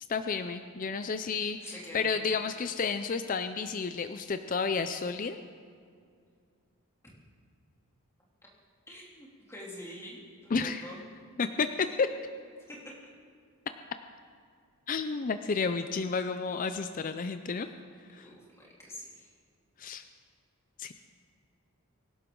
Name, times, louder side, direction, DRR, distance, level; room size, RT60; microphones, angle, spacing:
voice 1, 0.1-5.4 10.5-10.9 11.4-12.1 14.9-17.7 18.1-18.3 19.8-20.0 20.8-20.9, left 5 dB, 35° left, 9 dB, 0.4 m, -31 dB
voice 2, 1.6-2.2 8.9-11.0 12.7-12.8 18.2-19.3, equal, 10° left, -4 dB, 2.9 m, -46 dB
24.5 x 11.5 x 3.8 m, 2.2 s
head